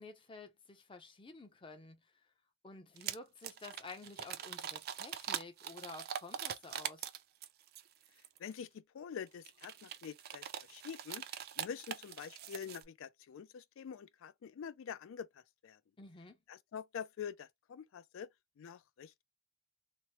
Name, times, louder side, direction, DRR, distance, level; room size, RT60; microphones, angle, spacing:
voice 1, 0.0-2.0 2.6-7.1 16.0-16.4, left 3 dB, 25° left, 0.6 m, -51 dB
sound 1, 3.0-3.2 3.4-7.8 8.2-8.5 9.4-12.8, right 9 dB, 50° right, 0.3 m, -42 dB
voice 2, 8.4-11.2 11.6-15.8 16.5-18.3 18.6-19.2, left 7 dB, 70° left, 0.3 m, -46 dB
2.9 x 2.0 x 2.8 m
head